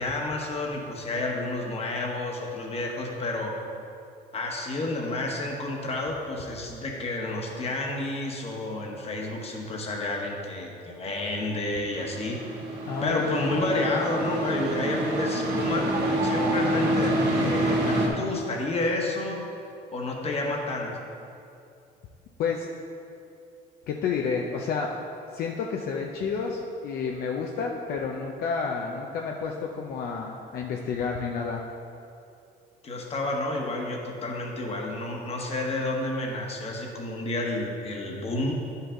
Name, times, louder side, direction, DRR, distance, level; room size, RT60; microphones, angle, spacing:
voice 1, 0.0-3.5 4.3-12.4 13.0-19.5 19.9-21.0 32.8-38.7, left 2 dB, 35° left, 0 dB, 1.3 m, -30 dB
sound 1, 11.9-18.1, right 1 dB, 75° right, 1.5 m, -27 dB
voice 2, 12.9-13.5 22.4-22.7 23.9-24.9 25.3-31.6, left 5 dB, 65° left, 0 dB, 0.6 m, -30 dB
10.5 x 5.6 x 3.7 m, 2.6 s
cardioid pair, 110°, 17 cm